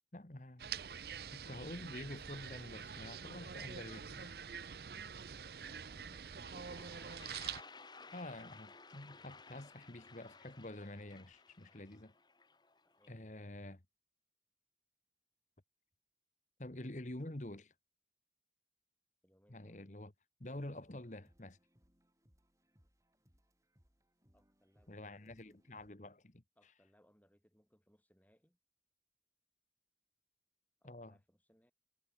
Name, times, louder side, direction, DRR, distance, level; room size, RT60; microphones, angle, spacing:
voice 1, 0.1-0.7 1.3-4.3 8.1-12.1 13.1-13.8 16.6-17.7 19.5-20.1 20.4-21.6 24.9-26.4 30.8-31.2, left 1 dB, 45° left, 1.5 m, -48 dB
sound 1, 0.6-7.6, right 7 dB, 60° right, 0.6 m, -46 dB
voice 2, 5.7-7.2 12.8-13.4 19.2-20.0 24.3-25.6 26.6-28.6 30.8-31.7, equal, 10° left, 5.2 m, -71 dB
Toilet flush, 6.0-6.1 6.3-13.1, left 4 dB, 25° left, 2.3 m, -57 dB
sound 2, 20.5-25.9, equal, 20° right, 5.7 m, -72 dB
head